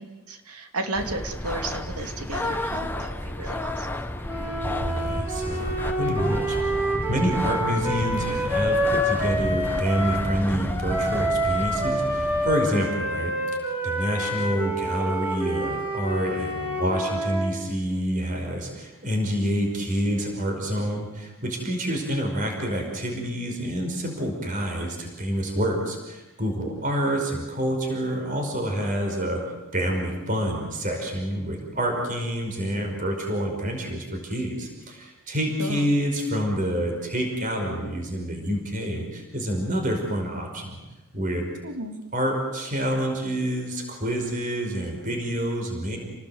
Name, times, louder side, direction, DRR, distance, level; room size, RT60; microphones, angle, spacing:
voice 1, 0.0-3.9 12.7-13.0 27.1-27.2 35.6-35.9 41.6-42.0, right 2 dB, 90° right, 5 dB, 2.8 m, -33 dB
sound 1, 0.9-12.6, left 1 dB, 10° left, 1.0 m, -32 dB
sound 2, 4.2-10.3 10.9-17.5, equal, 5° right, 6.2 m, -27 dB
voice 2, 4.6-6.6 7.1-13.3 13.8-29.4 29.7-40.8 41.1-41.5 42.1-46.0, equal, 35° right, 2 dB, 5.4 m, -27 dB
30.0 x 19.5 x 8.0 m, 1.1 s
head